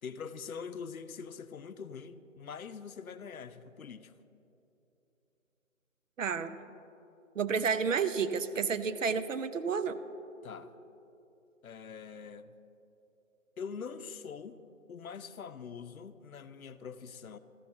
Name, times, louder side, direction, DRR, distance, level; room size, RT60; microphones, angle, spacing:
voice 1, 0.0-4.1 10.4-10.7 11.6-12.5 13.6-14.6 14.9-17.4, left 6 dB, 85° left, 12 dB, 0.6 m, -44 dB
voice 2, 6.2-6.6 7.4-10.0, right 6 dB, 70° right, 12 dB, 0.6 m, -30 dB
14.0 x 5.7 x 4.2 m, 2.9 s
figure-of-eight pair, 160°, 41 cm